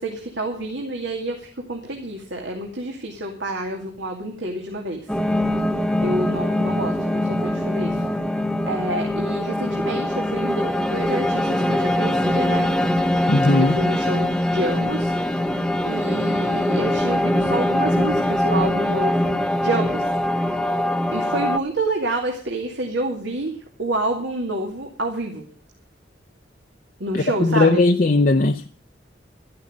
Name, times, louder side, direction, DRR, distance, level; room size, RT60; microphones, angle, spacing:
voice 1, 0.0-5.1 6.0-8.0 8.7-12.7 13.5-15.6 15.9-20.0 21.1-25.4 27.0-27.8, right 1 dB, 85° right, 2.5 m, -28 dB
sound 1, 5.1-21.6, left 1 dB, 5° left, 0.8 m, -22 dB
voice 2, 13.3-13.8 27.1-28.7, left 2 dB, 50° left, 0.6 m, -18 dB
13.5 x 11.5 x 6.6 m
head